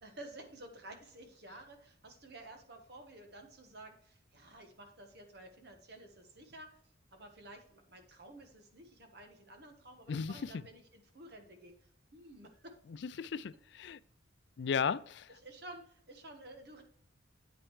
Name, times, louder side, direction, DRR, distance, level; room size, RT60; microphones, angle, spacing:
voice 1, 0.0-6.8 7.1-11.7 12.1-12.7 15.4-16.8, right 1 dB, 55° right, 1.4 m, -52 dB
voice 2, 10.1-10.5 13.0-14.0 14.6-15.3, left 6 dB, 60° left, 0.3 m, -35 dB
8.7 x 8.4 x 3.2 m
head